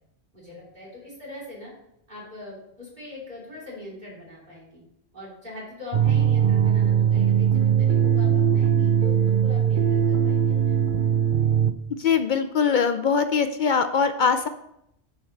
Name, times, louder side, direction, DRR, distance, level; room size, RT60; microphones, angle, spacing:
voice 1, 0.3-1.7 2.1-4.8 5.1-11.1, left 2 dB, 40° right, -6 dB, 3.4 m, -42 dB
sound 1, 5.9-11.7, right 8 dB, 60° right, 0.6 m, -20 dB
voice 2, 12.0-14.5, left 6 dB, 60° left, 9 dB, 0.5 m, -22 dB
7.0 x 5.0 x 6.5 m, 0.78 s
omnidirectional pair, 1.2 m